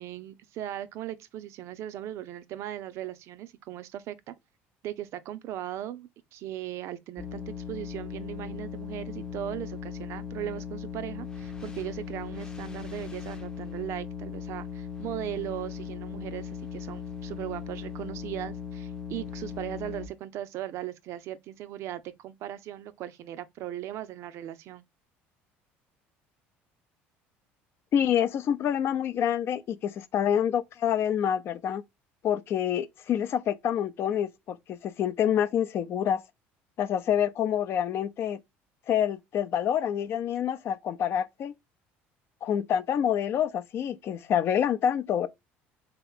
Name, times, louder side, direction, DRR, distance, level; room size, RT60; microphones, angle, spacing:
voice 1, 0.0-4.3 4.8-24.8, right 12 dB, 60° right, 0.5 m, -38 dB
sound 1, 7.2-20.1, left 7 dB, 15° left, 0.6 m, -38 dB
voice 2, 27.9-31.8 32.2-36.2 36.8-38.4 38.9-41.5 42.4-45.3, left 9 dB, 50° left, 0.5 m, -27 dB
3.4 x 2.9 x 3.7 m
supercardioid pair, 105°, 5 cm